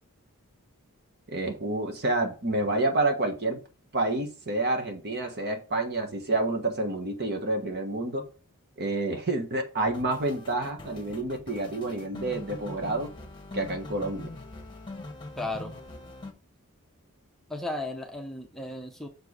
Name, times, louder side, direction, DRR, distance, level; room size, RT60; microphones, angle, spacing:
voice 1, 1.3-3.6 3.9-8.2 8.8-13.1 13.5-14.3, right 2 dB, 50° right, 4 dB, 1.4 m, -29 dB
sound 1, 9.8-16.3, left 2 dB, 20° left, 1.3 m, -42 dB
voice 2, 15.4-15.7 17.5-19.1, left 2 dB, ahead, 2 dB, 0.8 m, -35 dB
6.7 x 4.6 x 4.8 m, 0.35 s
head